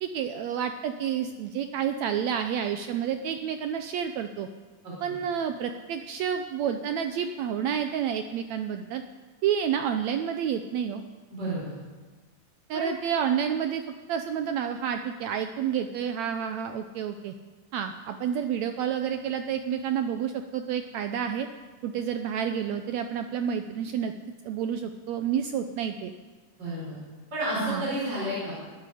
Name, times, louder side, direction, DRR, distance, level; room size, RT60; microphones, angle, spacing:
voice 1, 0.0-4.5 5.0-9.0 9.4-11.0 12.7-17.3 17.7-21.5 21.8-24.1 24.4-26.1 27.6-27.9, right 8 dB, 85° right, 7 dB, 1.6 m, -29 dB
voice 2, 11.3-11.7 12.7-12.9 26.6-27.0 27.3-28.5, right 1 dB, 30° right, -6 dB, 5.5 m, -31 dB
21.0 x 13.0 x 5.0 m, 1.4 s
omnidirectional pair, 3.9 m